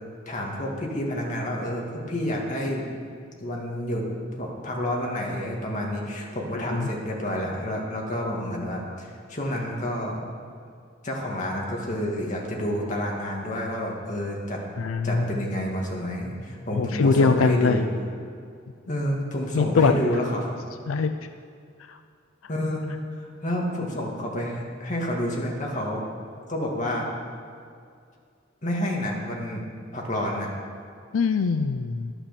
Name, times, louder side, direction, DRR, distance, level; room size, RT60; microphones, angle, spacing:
voice 1, 0.3-2.9 3.4-4.1 4.3-10.2 11.0-14.6 15.0-17.9 18.9-20.5 22.5-22.9 23.2-26.0 26.5-27.1 28.6-29.6 29.9-30.5, equal, 40° left, -1 dB, 2.0 m, -29 dB
voice 2, 14.8-15.4 16.7-17.8 19.5-20.0 20.9-21.1 21.9-22.0 31.1-32.1, left 4 dB, 85° left, 9 dB, 0.4 m, -22 dB
11.5 x 8.9 x 6.8 m, 2.3 s
head